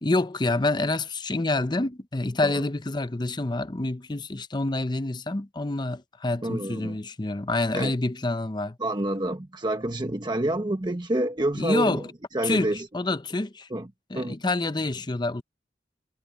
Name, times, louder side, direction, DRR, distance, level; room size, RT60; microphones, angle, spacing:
voice 1, 0.0-8.8 11.5-12.1 12.4-13.7 14.1-15.4, left 2 dB, 25° left, 0.7 m, -27 dB
voice 2, 6.4-7.0 7.7-7.9 8.8-12.1 12.3-12.9 13.7-13.9 14.1-14.3, right 1 dB, 25° right, 1.1 m, -28 dB
head